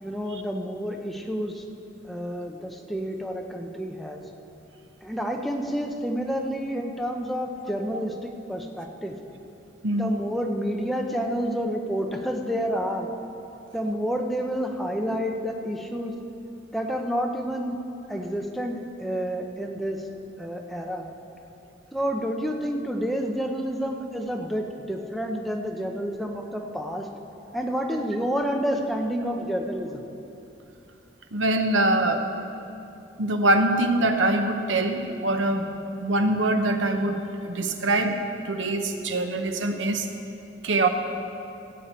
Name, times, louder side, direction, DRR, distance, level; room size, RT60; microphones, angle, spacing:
voice 1, 0.0-1.6 2.1-4.2 5.0-9.2 9.9-13.1 13.7-16.1 16.7-17.8 18.1-20.0 20.4-21.0 21.9-27.1 27.5-30.0, equal, ahead, 2 dB, 0.7 m, -29 dB
voice 2, 31.3-32.2 33.2-35.7 36.0-38.2 38.4-40.1 40.6-40.9, right 2 dB, 90° right, 6 dB, 0.9 m, -23 dB
16.5 x 8.4 x 4.4 m, 2.8 s
head